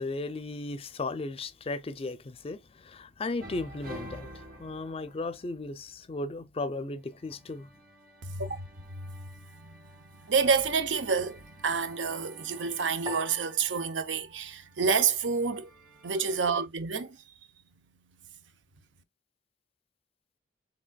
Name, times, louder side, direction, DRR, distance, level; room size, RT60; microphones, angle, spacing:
voice 1, 0.0-7.7, left 2 dB, 30° left, 0.4 m, -36 dB
sound 1, 3.4-5.8 7.0-13.7 14.7-16.6, right 1 dB, 50° right, 1.8 m, -50 dB
voice 2, 8.2-8.6 9.6-9.7 10.2-15.7 16.0-17.2, right 5 dB, 85° right, 0.7 m, -28 dB
Piano, 13.1-15.6, right 1 dB, 30° right, 0.9 m, -46 dB
5.1 x 3.4 x 2.2 m
head